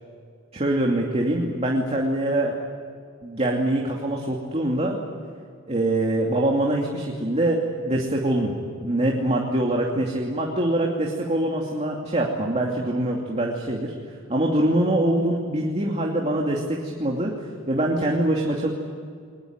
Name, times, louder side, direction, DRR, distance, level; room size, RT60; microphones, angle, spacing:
voice 1, 0.5-2.6 3.2-5.0 5.7-8.5 8.8-13.9 14.3-17.3 17.7-18.7, right 1 dB, 30° right, -1 dB, 2.7 m, -24 dB
22.5 x 21.0 x 9.6 m, 2.2 s
head